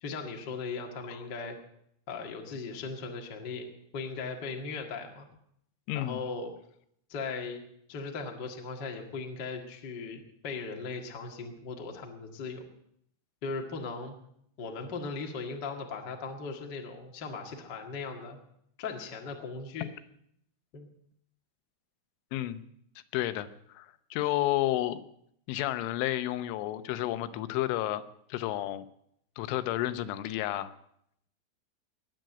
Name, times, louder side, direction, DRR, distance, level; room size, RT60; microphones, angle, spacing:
voice 1, 0.0-1.6 2.1-5.3 5.9-6.5 7.1-7.6 7.9-12.6 13.4-14.1 14.6-18.4 18.8-19.9 20.7-20.9, left 4 dB, 70° left, 2 dB, 1.0 m, -38 dB
voice 2, 5.9-6.2 22.3-22.6 23.1-23.5 23.7-25.0 25.5-28.0 28.3-28.9 29.4-30.7, left 14 dB, 90° left, 11 dB, 3.3 m, -31 dB
20.0 x 7.8 x 7.8 m, 0.73 s
omnidirectional pair, 5.4 m